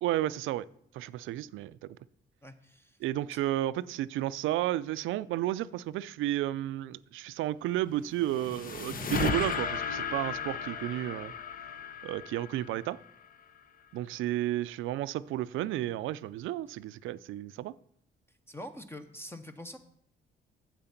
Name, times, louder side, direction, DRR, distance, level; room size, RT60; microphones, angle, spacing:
voice 1, 0.0-0.7 0.9-2.0 3.0-11.3 12.0-13.0 13.9-17.7, right 14 dB, 85° right, 17 dB, 0.4 m, -32 dB
voice 2, 2.4-3.0 3.3-3.4 18.3-19.8, left 1 dB, 10° left, 8 dB, 0.8 m, -45 dB
sound 1, 7.9-13.3, left 6 dB, 45° left, 0.8 m, -35 dB
8.8 x 7.5 x 5.8 m, 0.69 s
cardioid pair, 90°, 20 cm